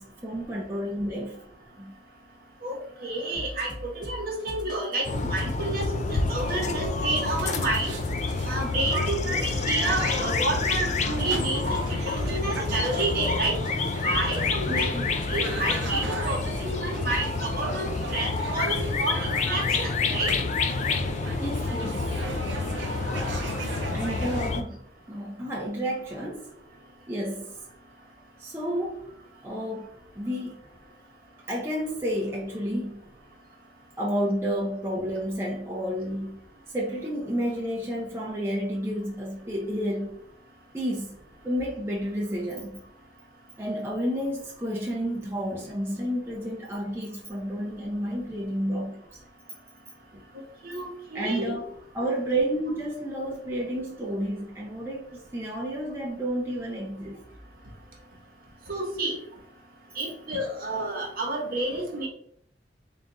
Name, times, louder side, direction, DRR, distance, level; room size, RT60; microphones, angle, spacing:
voice 1, 0.0-1.5 1.8-1.9 14.7-14.9 21.4-22.4 22.7-23.5 23.9-26.5 27.1-27.6 28.4-29.1 29.4-30.6 31.5-33.1 34.0-36.4 36.7-40.2 40.7-41.2 41.4-42.8 43.6-49.2 50.1-50.2 51.1-57.2 59.9-60.1, equal, 15° right, 0.5 m, -31 dB
voice 2, 2.6-7.9 8.5-11.8 12.0-13.6 14.0-20.3 50.6-51.5 58.7-59.2 59.9-62.1, right 2 dB, 55° right, 1.1 m, -30 dB
sound 1, 3.3-17.6, left 1 dB, 25° left, 1.2 m, -40 dB
sound 2, 5.0-24.6, left 4 dB, 40° left, 0.3 m, -28 dB
sound 3, 7.3-24.5, right 3 dB, 85° right, 0.6 m, -38 dB
3.5 x 2.5 x 3.9 m
head